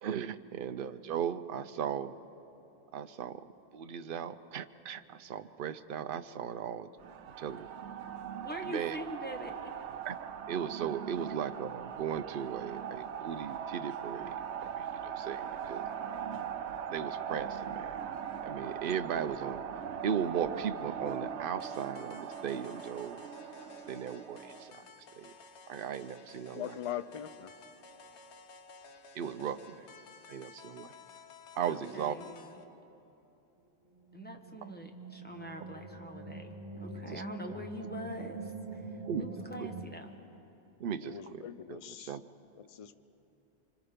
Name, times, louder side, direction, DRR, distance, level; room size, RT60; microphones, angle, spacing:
voice 1, 0.0-2.2 2.9-3.4 3.7-6.9 7.4-7.7 8.6-9.0 10.0-10.2 10.5-14.4 14.8-15.9 16.9-18.0 18.4-19.6 20.0-23.2 23.9-24.8 25.2-25.3 25.7-26.8 29.1-29.9 30.3-30.9 31.6-32.2 36.8-37.2 39.1-39.3 39.6-39.7 40.8-41.4 41.7-42.2, right 8 dB, 60° right, 0.8 m, -37 dB
sound 1, 7.0-24.7, right 8 dB, 90° right, 1.0 m, -40 dB
voice 2, 8.4-9.7 31.7-32.6 34.1-40.2, equal, 10° left, 1.3 m, -44 dB
sound 2, 21.6-32.6, left 4 dB, 90° left, 1.2 m, -54 dB
voice 3, 26.5-27.5 32.2-32.3 41.0-42.2 42.6-42.9, left 10 dB, 40° left, 0.5 m, -41 dB
sound 3, 33.9-39.8, right 2 dB, 20° right, 1.4 m, -44 dB
25.5 x 25.0 x 5.1 m
omnidirectional pair, 1.1 m